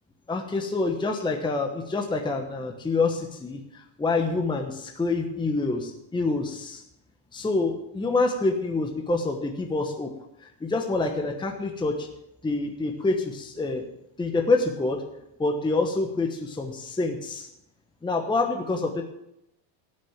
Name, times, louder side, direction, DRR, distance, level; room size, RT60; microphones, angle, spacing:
voice 1, 0.3-6.8 7.3-10.1 10.4-12.1 12.4-13.8 14.2-15.0 15.4-17.5 18.0-19.0, left 3 dB, 10° left, 3 dB, 1.2 m, -27 dB
17.5 x 6.5 x 7.3 m, 0.84 s
cardioid pair, 140°, 50 cm